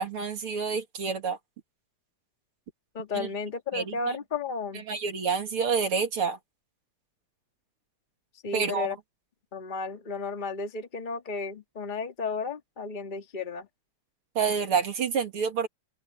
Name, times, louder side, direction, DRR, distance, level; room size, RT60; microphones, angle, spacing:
voice 1, 0.0-1.4 3.1-3.3 3.7-4.2 4.7-6.4 8.5-8.9 14.4-15.7, right 6 dB, 45° right, 2.7 m, -28 dB
voice 2, 2.9-4.8 8.4-9.0 9.5-13.7, left 4 dB, 20° left, 1.3 m, -33 dB
open air
omnidirectional pair, 3.5 m